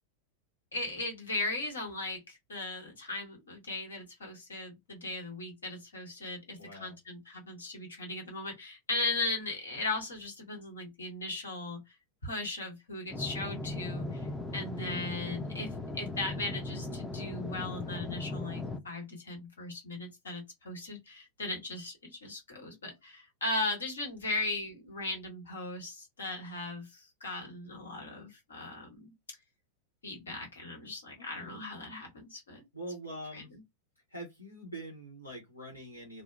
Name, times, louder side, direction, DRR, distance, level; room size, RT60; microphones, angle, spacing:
voice 1, 0.7-11.8 12.2-29.1 30.0-32.6 33.3-33.4, left 2 dB, 70° left, 1.2 m, -38 dB
voice 2, 6.6-7.0 31.2-31.5 32.7-33.5 34.1-36.2, right 1 dB, 90° left, 0.9 m, -44 dB
sound 1, 13.1-18.8, left 2 dB, 10° left, 0.4 m, -38 dB
2.7 x 2.0 x 2.3 m
figure-of-eight pair, 90°, 0 cm